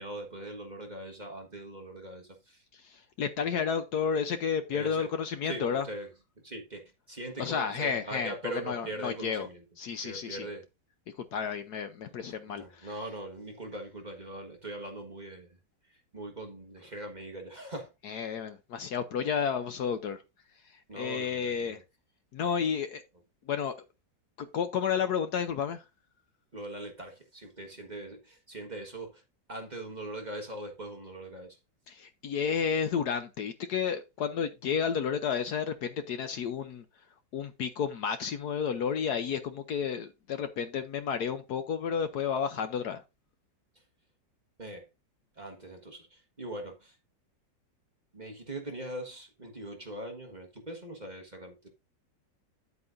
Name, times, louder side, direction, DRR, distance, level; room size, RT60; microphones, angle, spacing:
voice 1, 0.0-2.6 4.7-5.1 5.4-6.1 6.4-6.8 7.1-9.6 10.0-10.6 12.2-15.6 15.9-17.9 20.9-21.8 26.5-29.2 29.5-31.6 44.6-44.9 45.3-47.0 48.1-51.7, right 1 dB, 25° right, 1.3 m, -41 dB
voice 2, 2.8-5.8 7.4-9.5 9.8-10.5 11.3-12.9 18.0-20.2 20.9-21.8 22.3-23.0 23.5-23.7 24.5-25.8 31.9-36.8 37.3-43.0, left 7 dB, 65° left, 1.2 m, -31 dB
9.5 x 8.2 x 2.6 m
omnidirectional pair, 2.0 m